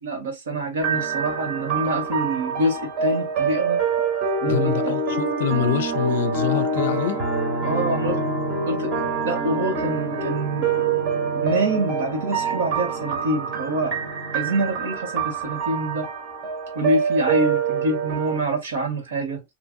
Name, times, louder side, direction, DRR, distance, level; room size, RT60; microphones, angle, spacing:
voice 1, 0.0-3.8 4.4-5.0 7.6-8.2 8.7-10.7 11.4-14.0 14.3-16.1 16.7-19.4, right 1 dB, 85° right, 1.4 m, -26 dB
sound 1, 0.8-18.4, right 5 dB, 30° right, 0.8 m, -25 dB
voice 2, 4.5-7.2, left 9 dB, 65° left, 0.4 m, -25 dB
2.6 x 2.6 x 2.5 m
supercardioid pair, 170°, 0 cm